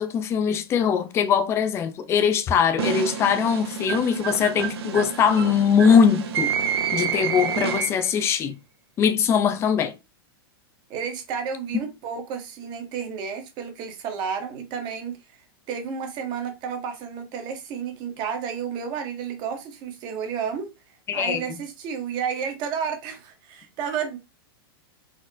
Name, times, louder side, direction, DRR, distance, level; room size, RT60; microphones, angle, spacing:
voice 1, 0.0-6.5 6.9-8.6 9.0-9.9 21.1-21.4, left 7 dB, 20° left, 0.4 m, -21 dB
sound 1, 2.8-8.2, right 7 dB, 80° right, 0.7 m, -28 dB
voice 2, 10.9-24.2, right 7 dB, 35° right, 0.8 m, -32 dB
4.2 x 2.0 x 2.5 m
supercardioid pair, 145°, 13 cm